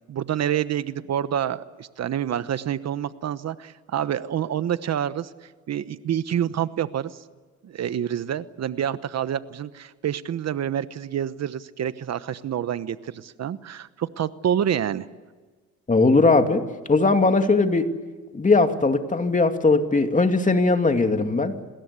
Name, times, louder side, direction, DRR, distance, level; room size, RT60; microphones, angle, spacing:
voice 1, 0.1-7.2 7.6-15.1, right 9 dB, 60° right, 14 dB, 1.1 m, -27 dB
voice 2, 15.9-17.9 18.3-21.5, left 3 dB, 25° left, 6 dB, 2.5 m, -19 dB
28.0 x 21.0 x 8.3 m, 1.4 s
cardioid pair, 90°, 30 cm